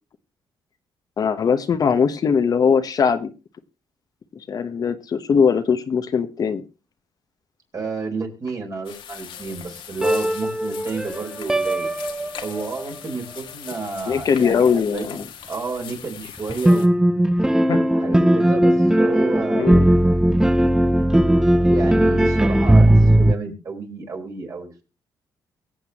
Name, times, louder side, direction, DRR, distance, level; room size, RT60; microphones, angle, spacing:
voice 1, 1.2-3.3 4.3-6.6 14.1-15.2 17.7-17.8 19.5-19.9, left 6 dB, 45° left, 8 dB, 1.1 m, -20 dB
voice 2, 7.7-11.9 12.4-15.2 15.5-17.2 17.9-20.1 21.7-24.8, right 4 dB, 40° right, 2 dB, 4.5 m, -31 dB
sound 1, 8.8-16.9, left 9 dB, 75° left, 1.7 m, -40 dB
sound 2, 10.0-12.8 16.4-23.3, right 1 dB, 5° right, 0.6 m, -17 dB
23.5 x 7.9 x 3.0 m, 0.31 s
cardioid pair, 110°, 9 cm